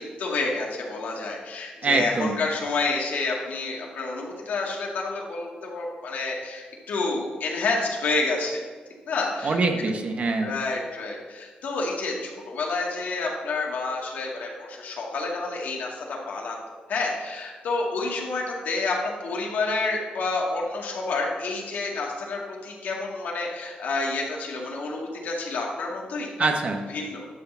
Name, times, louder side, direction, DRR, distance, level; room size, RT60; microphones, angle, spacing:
voice 1, 0.0-8.6 9.1-9.6 10.4-16.6 16.9-26.5 26.9-27.3, left 3 dB, 75° left, -1 dB, 2.0 m, -29 dB
voice 2, 1.8-2.4 9.4-10.6 26.4-26.9, right 3 dB, 45° right, 4 dB, 1.1 m, -24 dB
11.0 x 3.8 x 7.2 m, 1.4 s
cardioid pair, 100°, 3 cm